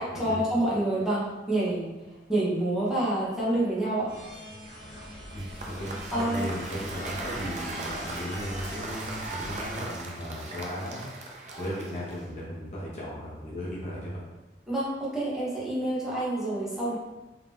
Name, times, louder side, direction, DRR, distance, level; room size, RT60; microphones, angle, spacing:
voice 1, 0.0-1.9 2.3-4.1 6.1-6.5 14.7-17.0, right 1 dB, 5° right, -10 dB, 1.0 m, -27 dB
sound 1, 4.1-9.8, equal, 20° right, 1.1 m, -43 dB
voice 2, 5.3-11.0 11.6-14.2, equal, 40° left, -7 dB, 1.0 m, -36 dB
Cheering / Applause / Crowd, 5.3-12.4, right 2 dB, 40° right, 0.5 m, -39 dB
3.4 x 2.8 x 3.5 m, 1.1 s
head